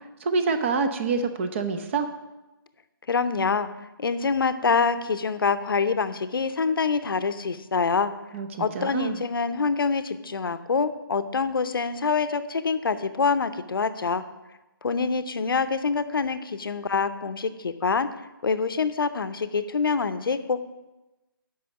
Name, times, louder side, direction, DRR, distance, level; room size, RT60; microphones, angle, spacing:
voice 1, 0.2-2.1 8.3-9.2, right 4 dB, 30° right, 8 dB, 0.8 m, -26 dB
voice 2, 3.1-3.7 4.0-8.1 8.6-14.2 14.8-18.1 18.4-20.6, left 5 dB, 70° left, 12 dB, 0.7 m, -25 dB
8.6 x 5.5 x 7.2 m, 1.0 s
figure-of-eight pair, 150°, 12 cm